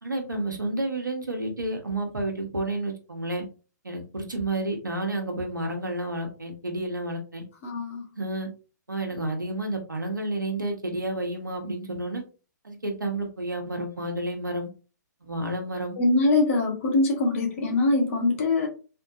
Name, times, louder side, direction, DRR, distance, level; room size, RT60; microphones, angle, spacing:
voice 1, 0.0-3.4 3.8-7.4 8.2-8.5 8.9-12.2 12.6-14.7 15.2-16.0, right 1 dB, 85° right, 2 dB, 1.4 m, -30 dB
voice 2, 7.6-8.0 16.0-18.7, left 2 dB, 45° left, 2 dB, 1.4 m, -23 dB
3.8 x 3.4 x 2.7 m, 0.34 s
figure-of-eight pair, 125°, 10 cm